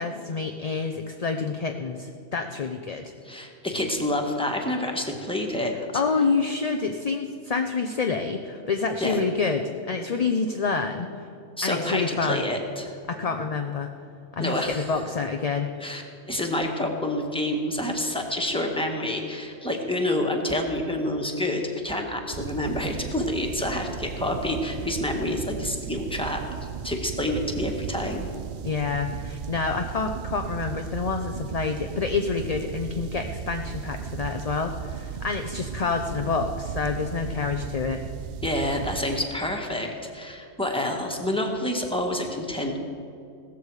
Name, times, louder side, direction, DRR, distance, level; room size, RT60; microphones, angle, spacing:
voice 1, 0.0-3.1 5.9-11.1 11.6-12.5 13.1-13.9 14.3-16.0 28.6-38.0, left 4 dB, 40° left, 5 dB, 0.6 m, -28 dB
voice 2, 3.2-6.0 9.0-9.2 11.6-13.0 14.4-14.9 15.8-16.0 16.3-26.4 26.8-28.3 38.4-42.8, left 1 dB, 5° left, 1 dB, 1.6 m, -28 dB
sound 1, 22.3-39.2, right 8 dB, 60° right, 0.5 m, -36 dB
16.5 x 14.0 x 4.8 m, 2.5 s
omnidirectional pair, 1.3 m